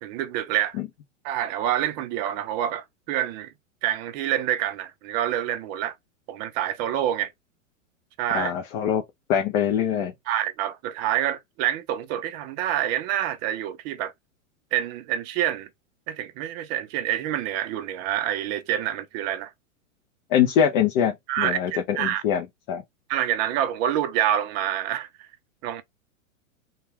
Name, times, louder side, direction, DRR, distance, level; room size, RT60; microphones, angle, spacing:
voice 1, 0.0-0.8 1.2-3.5 3.8-5.9 6.3-7.3 8.2-8.5 10.3-14.1 14.7-15.7 16.1-19.5 21.3-22.2 23.1-25.3 25.6-25.8, right 11 dB, 35° right, 0.4 m, -27 dB
voice 2, 8.3-9.0 9.3-10.1 20.3-22.8, left 8 dB, 35° left, 0.4 m, -23 dB
2.2 x 2.2 x 3.1 m
hypercardioid pair, 110°, 40 cm